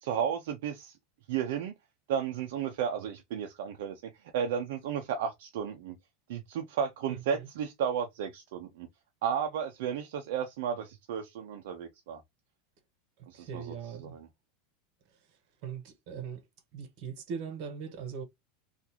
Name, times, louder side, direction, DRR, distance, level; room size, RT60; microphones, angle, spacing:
voice 1, 0.0-1.0 1.3-1.7 2.1-6.0 6.3-8.9 9.2-12.2 13.3-14.3, right 8 dB, 65° right, 0.6 m, -33 dB
voice 2, 7.1-7.5 13.3-14.2 15.6-16.4 16.7-18.2, right 6 dB, 45° right, 1.1 m, -40 dB
3.6 x 2.5 x 2.9 m
supercardioid pair, 170°, 0 cm